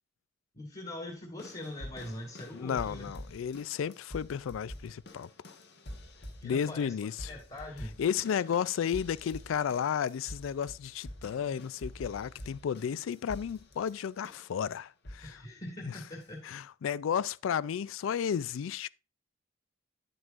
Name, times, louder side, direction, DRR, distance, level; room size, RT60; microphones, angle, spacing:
voice 1, 0.5-3.1 6.4-8.0 15.2-16.4, left 1 dB, 35° left, 1.7 m, -42 dB
sound 1, 1.4-14.6 15.0-15.4 16.2-16.3, left 1 dB, 55° left, 1.2 m, -47 dB
voice 2, 2.5-5.3 6.4-7.3 8.0-15.4 15.9-16.0 16.4-18.9, left 8 dB, 75° left, 0.3 m, -33 dB
9.6 x 7.8 x 2.4 m
head